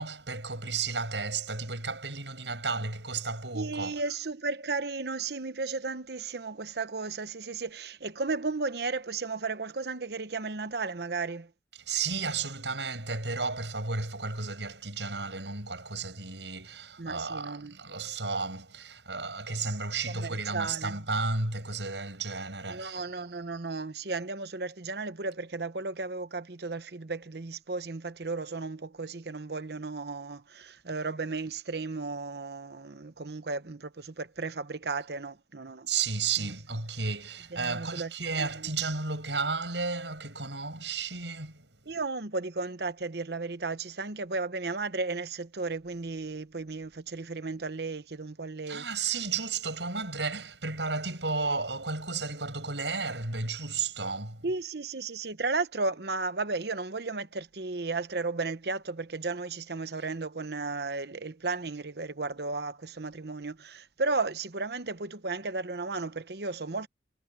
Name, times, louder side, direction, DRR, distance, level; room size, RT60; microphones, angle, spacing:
voice 1, 0.0-4.0 11.9-23.0 35.9-41.7 48.7-54.5, right 4 dB, 80° right, 7.6 m, -33 dB
voice 2, 3.5-11.5 17.0-17.7 20.1-20.9 22.7-35.9 36.4-36.5 37.5-38.5 41.9-48.8 54.4-66.9, right 3 dB, 65° right, 1.0 m, -34 dB
head